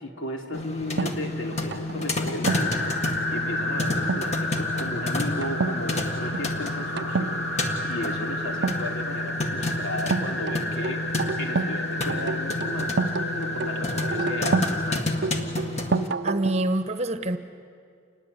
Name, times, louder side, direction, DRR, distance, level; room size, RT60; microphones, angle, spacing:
voice 1, 0.0-11.1 11.4-12.9 13.3-15.3, left 1 dB, 75° left, 2 dB, 3.1 m, -35 dB
sound 1, 0.5-16.1, left 2 dB, 35° left, 1.8 m, -30 dB
sound 2, 1.0-2.8 4.0-4.3 4.7-5.0 5.4-5.8 6.1-6.5 7.0-7.4 8.5-9.3 10.1-11.8 12.1-14.8 15.2-16.7, right 4 dB, 55° right, 0.5 m, -28 dB
sound 3, 2.4-15.0, left 1 dB, 60° left, 2.8 m, -31 dB
voice 2, 16.2-17.4, right 1 dB, 30° right, 9 dB, 1.0 m, -25 dB
28.5 x 20.5 x 8.2 m, 2.2 s
head